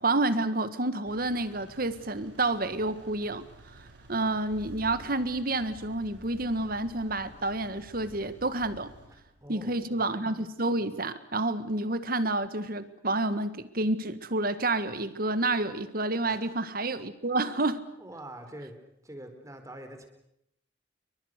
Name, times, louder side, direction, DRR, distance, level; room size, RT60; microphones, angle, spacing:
voice 1, 0.0-3.5 4.1-8.9 9.5-17.8, right 2 dB, 55° right, 12 dB, 1.7 m, -29 dB
Engine, 1.0-9.1, right 1 dB, 85° right, 6.7 m, -54 dB
Engine starting, 4.5-10.0, equal, 30° left, 6.3 m, -53 dB
voice 2, 9.1-10.0 16.3-16.6 18.0-18.7 19.0-20.1, right 1 dB, 20° right, 6 dB, 4.2 m, -45 dB
29.0 x 23.5 x 6.7 m, 0.79 s
head